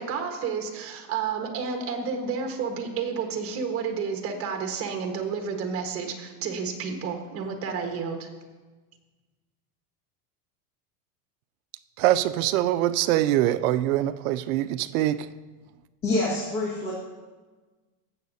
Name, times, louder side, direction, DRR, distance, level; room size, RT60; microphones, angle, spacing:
voice 1, 0.0-8.3, right 5 dB, 30° right, 4 dB, 1.3 m, -31 dB
voice 2, 12.0-15.3, right 14 dB, 65° right, 13 dB, 0.5 m, -23 dB
voice 3, 16.0-16.9, left 2 dB, 30° left, -6 dB, 1.7 m, -26 dB
15.5 x 7.3 x 2.7 m, 1.3 s
supercardioid pair, 145°, 47 cm